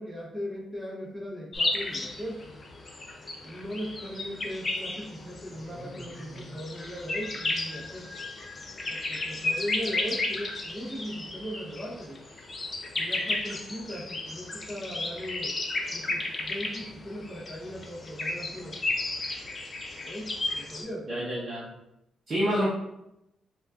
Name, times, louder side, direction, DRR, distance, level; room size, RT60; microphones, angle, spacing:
voice 1, 0.0-2.4 3.4-8.1 8.9-12.2 13.0-15.5 15.9-18.8 20.0-21.1, equal, 5° right, -4 dB, 0.9 m, -38 dB
sound 1, 1.5-20.8, left 2 dB, 25° left, 0.5 m, -34 dB
voice 2, 5.5-6.0 6.4-6.5 21.1-21.7 22.3-22.7, equal, 30° right, -6 dB, 0.7 m, -29 dB
5.3 x 2.3 x 2.5 m, 0.85 s
cardioid pair, 160°, 0 cm